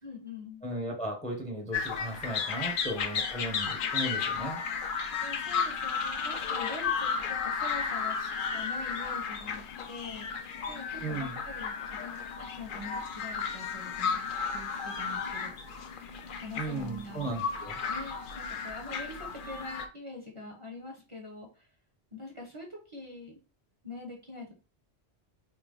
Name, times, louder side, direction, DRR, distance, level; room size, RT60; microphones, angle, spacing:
voice 1, 0.0-0.6 5.2-9.6 9.9-14.2 14.5-15.5 16.4-17.3 17.9-21.7 22.1-23.4 23.8-24.5, left 2 dB, 30° right, 0 dB, 0.8 m, -44 dB
voice 2, 0.6-4.6 11.0-11.3 16.6-17.8, right 1 dB, 5° left, 2 dB, 0.8 m, -36 dB
sound 1, 1.7-19.9, left 6 dB, 60° left, 0.7 m, -34 dB
3.3 x 2.8 x 3.7 m, 0.34 s
omnidirectional pair, 1.1 m